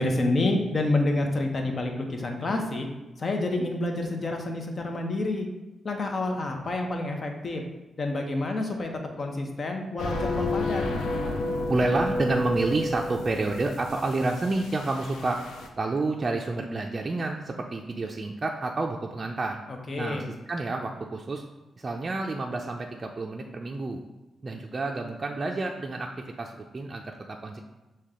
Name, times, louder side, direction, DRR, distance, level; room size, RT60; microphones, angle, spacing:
voice 1, 0.0-2.9 3.2-5.5 5.8-7.6 8.0-10.8 19.7-20.3, left 2 dB, 50° left, 3 dB, 0.8 m, -28 dB
sound 1, 10.0-15.7, left 2 dB, 85° left, 0.5 m, -31 dB
voice 2, 11.7-15.4 15.8-19.6 20.0-20.2 20.5-21.4 21.8-24.0 24.4-27.6, right 2 dB, 40° right, 1 dB, 0.4 m, -29 dB
6.3 x 2.2 x 3.6 m, 1.0 s
supercardioid pair, 50°, 0 cm